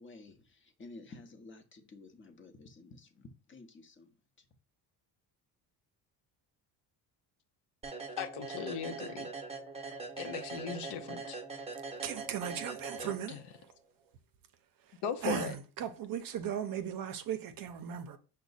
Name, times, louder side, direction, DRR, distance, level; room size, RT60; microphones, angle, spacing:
voice 1, 0.0-4.1 4.4-4.5, left 3 dB, 25° left, 0.8 m, -52 dB
sound 1, 7.8-13.6, right 4 dB, 15° right, 0.8 m, -42 dB
voice 2, 8.2-9.3 10.2-11.4 13.0-13.4 15.0-15.5, left 7 dB, 65° left, 0.7 m, -38 dB
voice 3, 12.0-13.4 15.2-18.2, right 9 dB, 50° right, 0.6 m, -37 dB
6.0 x 2.2 x 4.0 m
cardioid pair, 105°, 44 cm